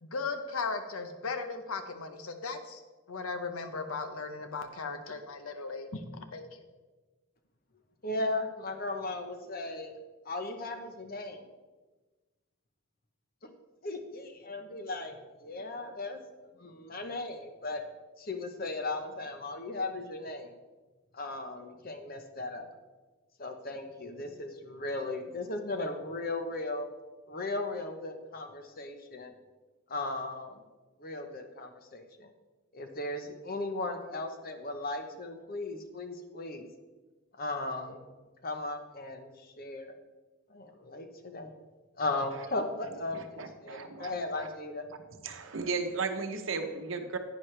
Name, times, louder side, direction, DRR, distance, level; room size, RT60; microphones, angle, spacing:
voice 1, 0.0-2.8 3.1-6.0 6.3-6.6, left 4 dB, 85° left, 8 dB, 0.9 m, -37 dB
voice 2, 8.0-9.9 10.2-11.5 13.4-13.5 13.8-17.8 18.2-20.5 21.1-22.7 23.4-26.9 27.3-29.3 29.9-30.6 31.0-32.3 32.7-36.7 37.4-38.1 38.4-39.9 40.5-41.5 42.0-44.9, left 2 dB, 45° left, 6 dB, 0.9 m, -37 dB
voice 3, 43.1-44.5 45.2-47.2, right 4 dB, 65° right, 6 dB, 0.9 m, -35 dB
10.5 x 9.4 x 3.3 m, 1.2 s
head